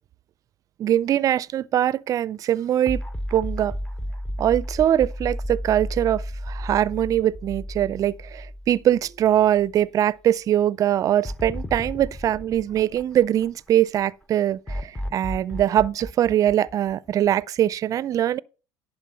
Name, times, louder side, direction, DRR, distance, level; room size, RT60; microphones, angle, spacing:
voice 1, 0.8-3.0 3.3-3.7 4.4-18.4, right 11 dB, 45° right, 0.4 m, -22 dB
sound 1, 2.9-9.2 9.6-9.7 11.2-13.7 14.7-17.4, equal, 10° left, 0.7 m, -33 dB
11.0 x 4.6 x 5.6 m
supercardioid pair, 90°, 8 cm